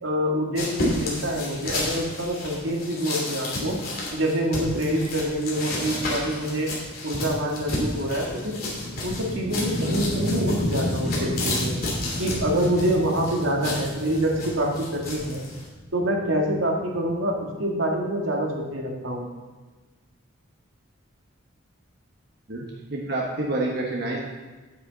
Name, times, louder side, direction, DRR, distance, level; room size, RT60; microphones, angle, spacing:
voice 1, 0.0-3.8 4.1-6.7 7.0-8.6 9.0-11.8 12.2-15.4 15.9-17.3 17.6-19.3, right 1 dB, 75° right, 0 dB, 1.8 m, -26 dB
sound 1, 0.6-15.7, left 2 dB, 45° left, 3.0 m, -32 dB
sound 2, 7.1-17.4, left 1 dB, 25° left, 3.5 m, -32 dB
voice 2, 22.9-24.2, right 2 dB, 50° right, -2 dB, 1.2 m, -27 dB
9.7 x 9.3 x 4.0 m, 1.3 s
head